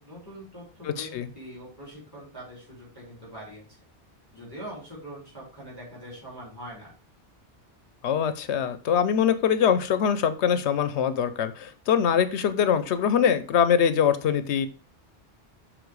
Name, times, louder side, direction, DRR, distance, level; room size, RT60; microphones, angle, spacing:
voice 1, 0.0-3.6 4.3-6.9, equal, 20° right, -7 dB, 3.8 m, -43 dB
voice 2, 0.8-1.3 8.0-14.7, left 8 dB, 75° left, 12 dB, 0.9 m, -23 dB
7.0 x 3.8 x 4.7 m, 0.36 s
omnidirectional pair, 1.2 m